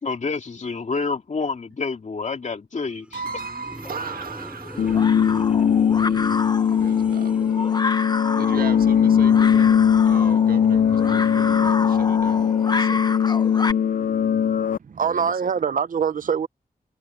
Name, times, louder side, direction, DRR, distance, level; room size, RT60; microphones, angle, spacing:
voice 1, 0.0-3.2, left 4 dB, 55° left, 2.5 m, -28 dB
sound 1, 2.8-7.7, right 1 dB, 10° right, 3.3 m, -40 dB
voice 2, 3.1-5.7 6.0-6.4 6.7-7.8 8.3-13.2 15.0-15.5, right 5 dB, 90° right, 1.5 m, -37 dB
sound 2, 3.8-13.7, left 3 dB, 30° left, 1.0 m, -30 dB
sound 3, 4.8-14.8, left 8 dB, 70° left, 0.5 m, -19 dB
voice 3, 14.8-16.5, right 7 dB, 65° right, 0.7 m, -24 dB
wide cardioid pair, 105°, 15 cm